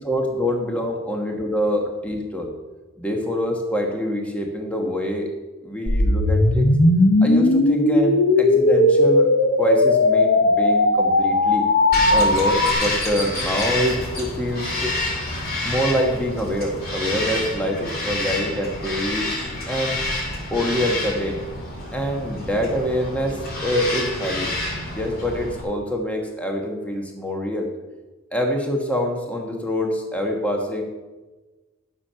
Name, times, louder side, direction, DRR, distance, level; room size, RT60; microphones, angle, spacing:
voice 1, 0.0-2.5 3.0-5.3 5.6-6.7 7.2-9.3 9.6-11.6 12.1-14.9 15.6-19.3 19.7-20.0 20.5-21.4 21.9-24.5 24.9-27.7 28.3-30.8, equal, 5° left, 1 dB, 1.3 m, -25 dB
sound 1, 5.9-12.7, left 2 dB, 80° left, 1.1 m, -17 dB
Bird vocalization bird call bird song, 11.9-25.6, left 2 dB, 50° left, 2.6 m, -28 dB
12.0 x 7.2 x 5.6 m, 1.2 s
head